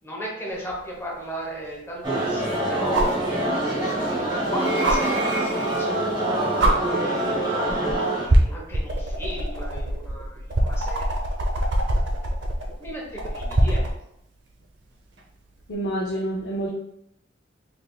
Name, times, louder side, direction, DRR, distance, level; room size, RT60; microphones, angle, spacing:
voice 1, 0.0-3.3 3.8-7.6 8.3-11.1 11.4-11.6 12.8-13.8, equal, 15° left, -3 dB, 0.9 m, -35 dB
sound 1, 0.7-0.8 2.9-3.2 4.8-5.0 6.1-6.2 6.6-6.7 7.7-7.9 8.3-14.0 15.6-15.7, right 1 dB, 70° right, 0.6 m, -23 dB
sound 2, 2.0-8.3, right 1 dB, 25° right, 1.0 m, -25 dB
sound 3, 4.6-5.9 7.2-7.3 8.3-8.4, right 2 dB, 85° right, 1.1 m, -34 dB
voice 2, 15.7-16.7, right 1 dB, 65° left, -2 dB, 0.5 m, -27 dB
3.5 x 3.3 x 2.3 m, 0.76 s
head